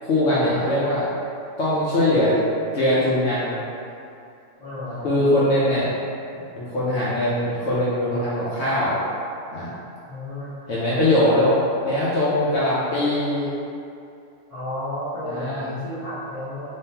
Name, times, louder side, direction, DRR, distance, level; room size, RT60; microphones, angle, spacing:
voice 1, 0.0-1.0 1.6-2.4 2.7-3.6 5.0-5.9 6.6-9.0 9.5-9.7 10.7-11.6 11.8-13.5 15.3-15.6, left 1 dB, 70° left, -9 dB, 0.9 m, -21 dB
voice 2, 4.6-5.1 10.1-10.5 14.5-16.7, left 1 dB, 35° left, -14 dB, 0.9 m, -32 dB
3.5 x 3.1 x 2.8 m, 2.5 s
omnidirectional pair, 1.3 m